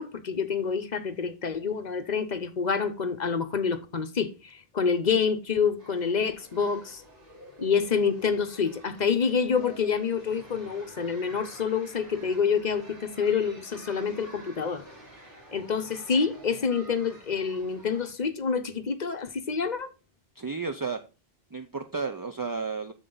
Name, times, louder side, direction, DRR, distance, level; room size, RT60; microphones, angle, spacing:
voice 1, 0.0-7.0 7.6-14.8 15.5-19.9, left 6 dB, 45° left, 0.8 m, -27 dB
sound 1, 5.8-18.1, right 1 dB, 55° right, 2.9 m, -49 dB
voice 2, 20.4-21.0 21.5-22.9, right 4 dB, 30° right, 0.4 m, -32 dB
7.8 x 6.8 x 3.9 m
omnidirectional pair, 1.0 m